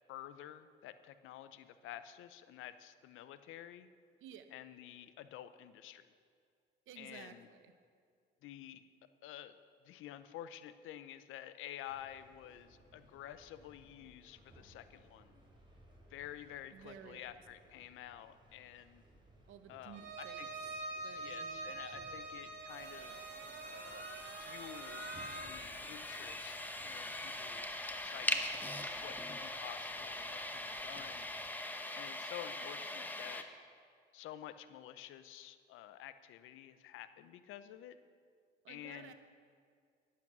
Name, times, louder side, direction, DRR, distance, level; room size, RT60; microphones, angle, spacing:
voice 1, 0.1-3.9 4.5-6.1 7.0-7.5 8.4-8.8 9.2-9.6 9.8-15.4 16.1-19.0 19.7-20.5 21.2-23.2 23.6-24.1 24.4-31.3 31.9-33.5 34.1-38.0 38.7-39.1, left 12 dB, 90° left, 12 dB, 0.6 m, -50 dB
voice 2, 6.9-7.7 16.7-17.4 19.5-20.4 20.7-21.7 22.0-22.5 32.6-32.7 38.6-39.1, right 9 dB, 85° right, 9 dB, 0.9 m, -55 dB
sound 1, 11.9-31.5, right 1 dB, 25° right, 3.0 m, -63 dB
Bowed string instrument, 19.9-25.5, right 2 dB, 60° right, 1.7 m, -45 dB
sound 2, 22.7-33.4, left 1 dB, 10° left, 0.8 m, -42 dB
10.5 x 8.5 x 6.0 m, 2.3 s
cardioid pair, 90°, 20 cm